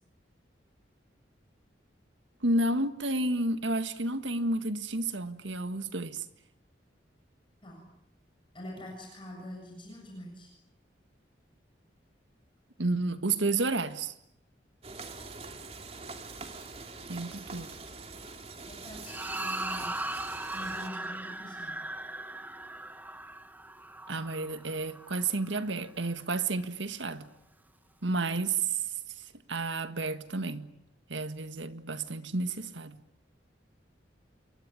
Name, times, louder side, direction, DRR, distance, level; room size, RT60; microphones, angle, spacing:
voice 1, 2.4-6.2 12.8-14.1 17.1-17.8 24.1-27.3 28.0-28.8 29.5-30.7 31.1-33.0, right 2 dB, 85° right, 1.8 m, -31 dB
voice 2, 8.5-10.5 18.7-20.0 20.5-21.8, equal, 25° left, 7.5 m, -44 dB
sound 1, 14.8-20.9, right 3 dB, 35° right, 2.8 m, -44 dB
sound 2, 19.1-25.6, right 2 dB, 10° right, 1.2 m, -38 dB
28.0 x 23.0 x 9.0 m
head